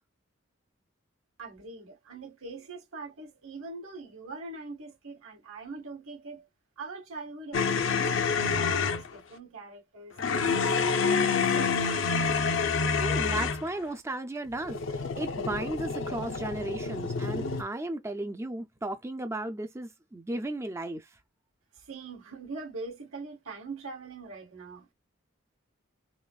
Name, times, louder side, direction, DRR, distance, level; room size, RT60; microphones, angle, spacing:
voice 1, 1.4-6.5 6.8-12.0 21.9-24.9, right 3 dB, 90° right, 1.9 m, -43 dB
sound 1, 7.5-9.1 10.2-13.7 14.6-17.6, left 5 dB, 65° left, 0.6 m, -27 dB
voice 2, 13.0-21.2, right 1 dB, 15° right, 0.4 m, -35 dB
4.1 x 2.9 x 2.3 m
head